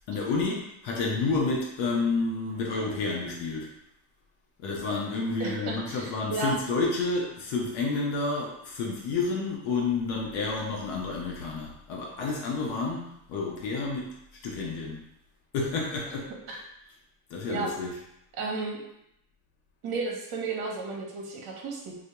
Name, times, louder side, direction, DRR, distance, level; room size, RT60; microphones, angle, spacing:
voice 1, 0.1-3.7 4.6-14.2 14.4-15.0 15.5-16.3 17.3-17.9, left 3 dB, 70° left, -2 dB, 0.7 m, -30 dB
voice 2, 5.4-6.6 17.5-17.7 18.4-18.8 19.8-21.9, right 3 dB, 50° right, 0 dB, 0.8 m, -33 dB
2.2 x 2.1 x 2.8 m, 0.79 s
supercardioid pair, 95°, 48 cm